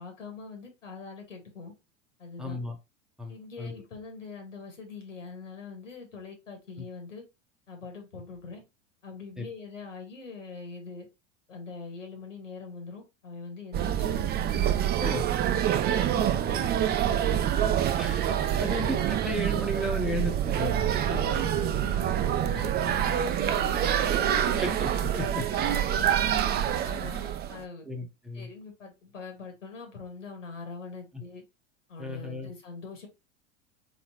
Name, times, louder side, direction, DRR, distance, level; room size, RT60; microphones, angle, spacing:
voice 1, 0.0-1.7 2.2-2.6 3.3-7.2 7.7-8.6 9.0-11.1 11.5-14.9 15.5-17.5 18.5-18.7 21.1-24.6 25.5-27.9 28.3-31.4 31.9-33.1, left 4 dB, 90° left, 1.9 m, -43 dB
voice 2, 2.4-2.8 3.2-3.8 6.8-6.9 9.4-9.5 15.0-15.2 18.0-21.3 24.6-25.5 27.9-28.5 31.1-31.2 32.0-32.5, left 1 dB, ahead, 0.9 m, -34 dB
sound 1, 13.7-27.6, right 10 dB, 25° right, 0.5 m, -26 dB
3.9 x 3.9 x 3.0 m
hypercardioid pair, 90°, 37 cm